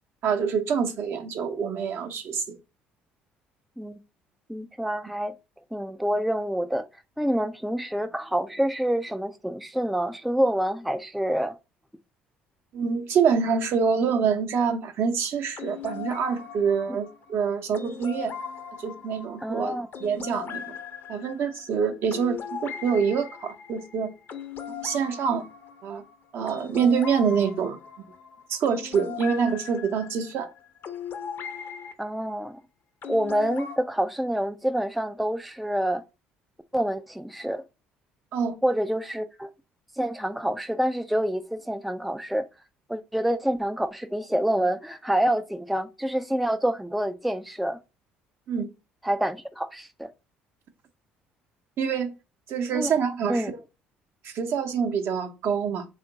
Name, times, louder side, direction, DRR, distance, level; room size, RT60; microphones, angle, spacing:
voice 1, 0.2-2.4 12.7-18.3 18.8-20.6 21.1-24.1 24.8-25.5 25.8-26.0 26.3-27.8 28.5-30.5 38.3-38.6 48.5-48.6 51.8-52.1 52.5-53.4 54.2-55.8, right 6 dB, 60° right, 0.7 m, -26 dB
voice 2, 4.5-5.3 5.7-6.9 7.2-11.6 19.4-19.9 32.0-32.6 33.1-36.0 36.7-37.6 38.6-39.5 40.0-42.5 42.9-47.8 49.0-50.1 52.7-52.9 53.3-53.5, right 1 dB, ahead, 0.3 m, -27 dB
sound 1, 15.6-31.9 33.0-33.8, left 7 dB, 50° left, 0.6 m, -39 dB
3.5 x 2.5 x 3.8 m
hypercardioid pair, 65°, 5 cm